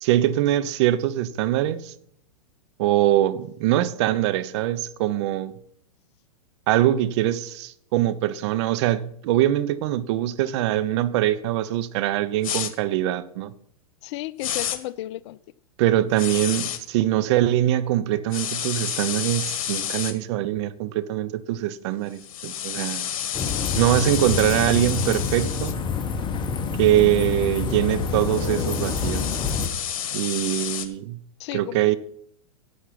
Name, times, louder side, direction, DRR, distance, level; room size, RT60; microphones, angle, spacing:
voice 1, 0.0-1.9 2.8-5.5 6.7-13.5 15.8-23.0 23.8-25.7 26.8-29.4 30.1-31.2 31.5-32.0, right 13 dB, 50° right, 0.9 m, -23 dB
sound 1, 12.4-12.7 14.4-14.8 16.2-16.8 18.3-20.1 22.2-25.7 27.8-30.9, left 9 dB, 65° left, 1.5 m, -30 dB
voice 2, 14.0-15.4 31.4-31.9, left 15 dB, 50° left, 0.5 m, -33 dB
sound 2, 23.3-29.7, left 5 dB, 25° left, 1.5 m, -27 dB
11.5 x 8.5 x 5.9 m
hypercardioid pair, 105°, 18 cm